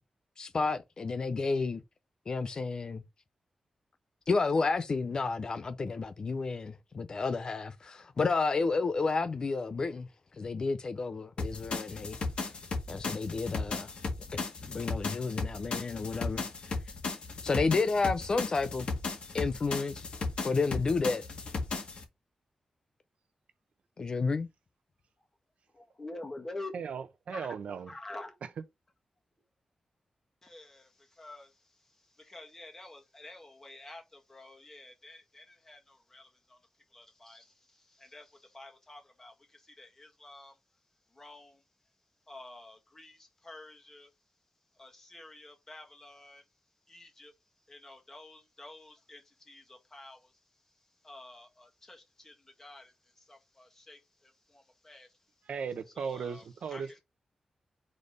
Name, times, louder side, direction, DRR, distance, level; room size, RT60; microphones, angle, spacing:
voice 1, 0.4-1.8 2.3-3.0 4.3-12.2 12.9-13.9 14.3-16.8 17.4-18.9 19.3-20.1 20.4-21.2 24.0-24.5, left 4 dB, 35° left, 0.5 m, -31 dB
sound 1, 11.4-22.0, left 3 dB, 55° left, 1.8 m, -36 dB
voice 2, 25.8-26.7 27.3-27.5 27.9-28.3 30.4-30.9 31.2-31.5 32.3-34.0 34.3-35.8 36.1-36.3 36.9-37.4 38.1-38.2 38.5-39.3 39.8-40.5 41.2-41.5 42.3-43.2 43.4-44.1 44.8-46.4 46.9-47.3 47.7-49.2 49.5-50.2 51.0-52.3 52.6-52.9 53.3-54.0 54.5-55.1 56.0-56.4 56.7-56.8, left 2 dB, 20° left, 1.7 m, -48 dB
voice 3, 26.7-27.9 28.4-28.5 55.5-57.0, right 6 dB, 80° right, 0.8 m, -37 dB
5.1 x 4.1 x 5.2 m
wide cardioid pair, 180°, 2 cm